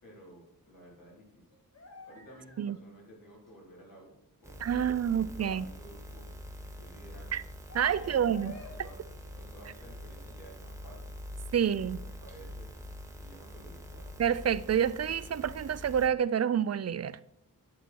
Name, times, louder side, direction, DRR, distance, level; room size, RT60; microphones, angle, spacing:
voice 1, 0.0-1.5 1.8-6.3 6.8-7.4 7.9-9.0 9.3-11.1 11.7-12.8 13.0-14.1, right 1 dB, 70° left, 4.3 m, -53 dB
sound 1, 1.5-2.8 3.8-3.9 6.1-6.3 7.7-8.8 9.0-9.8 10.1-10.4, left 2 dB, 45° left, 2.2 m, -50 dB
sound 2, 4.4-16.1, equal, 10° right, 1.4 m, -45 dB
voice 2, 4.6-5.6 7.3-7.4 7.7-8.5 11.5-12.0 14.2-17.2, right 8 dB, 45° right, 0.5 m, -28 dB
11.0 x 8.8 x 4.6 m
wide cardioid pair, 140°, 35 cm